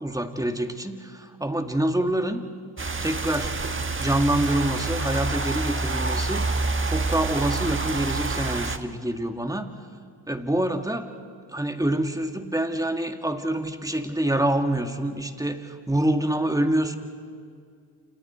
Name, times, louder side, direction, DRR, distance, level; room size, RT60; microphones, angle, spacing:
voice 1, 0.0-2.4 3.0-3.6 4.0-6.5 6.8-9.7 10.3-11.1 11.5-17.0, right 1 dB, 5° right, 6 dB, 2.2 m, -26 dB
sound 1, 2.8-8.8, right 3 dB, 25° right, 1.6 m, -27 dB
29.5 x 28.0 x 4.6 m, 2.2 s
supercardioid pair, 60°, 50 cm